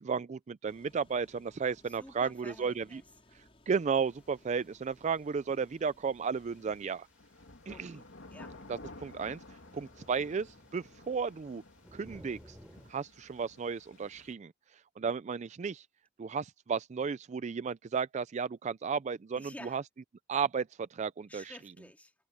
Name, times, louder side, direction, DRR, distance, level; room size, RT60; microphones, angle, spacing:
voice 1, 0.0-3.0 3.7-7.1 7.7-8.0 8.7-9.4 9.7-11.6 11.9-12.6 12.9-14.5 15.0-15.9 16.2-19.8 20.3-21.5, right 6 dB, 40° right, 0.4 m, -34 dB
sound 1, 0.7-6.9, left 1 dB, 30° left, 5.0 m, -63 dB
voice 2, 1.8-3.1 7.7-8.6 9.6-9.9 19.4-19.8 21.3-22.1, left 1 dB, 10° left, 2.2 m, -51 dB
sound 2, 4.0-12.9, equal, 5° right, 3.3 m, -59 dB
sound 3, 6.3-14.3, left 2 dB, 85° left, 2.4 m, -53 dB
head